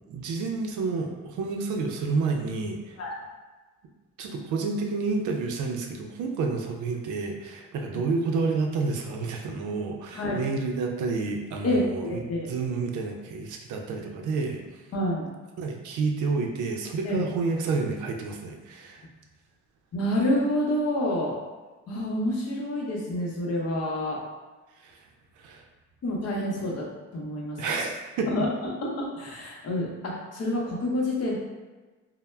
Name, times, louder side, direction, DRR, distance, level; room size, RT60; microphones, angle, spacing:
voice 1, 0.1-3.0 4.2-12.2 12.5-14.6 15.6-19.0 24.8-25.0 25.4-25.6 27.6-28.3, right 4 dB, 75° right, 2 dB, 0.5 m, -29 dB
voice 2, 11.6-12.5 14.9-15.2 17.1-17.2 19.9-21.4 21.9-24.2 26.0-26.9 27.1-27.6 28.3-28.5 28.8-31.4, left 1 dB, 55° left, -2 dB, 0.7 m, -28 dB
2.1 x 2.0 x 3.2 m, 1.2 s
cardioid pair, 90°, 30 cm